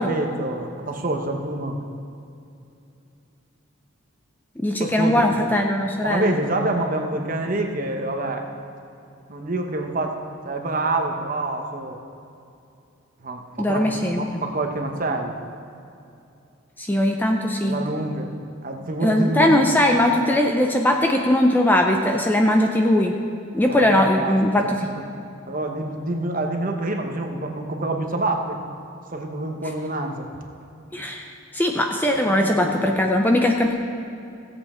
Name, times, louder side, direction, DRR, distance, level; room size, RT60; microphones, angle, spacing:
voice 1, 0.0-1.9 4.8-5.3 6.0-8.5 9.3-10.2 10.4-12.0 13.2-15.4 17.6-18.3 18.6-19.8 23.7-24.4 24.6-25.0 25.5-28.6 29.1-30.3 32.2-32.9, right 2 dB, 40° right, 3 dB, 1.0 m, -27 dB
voice 2, 4.6-6.4 13.6-14.2 16.8-17.8 19.0-23.1 23.5-24.7 30.9-33.8, left 1 dB, 10° left, 2 dB, 0.5 m, -20 dB
16.0 x 8.0 x 4.4 m, 2.6 s
head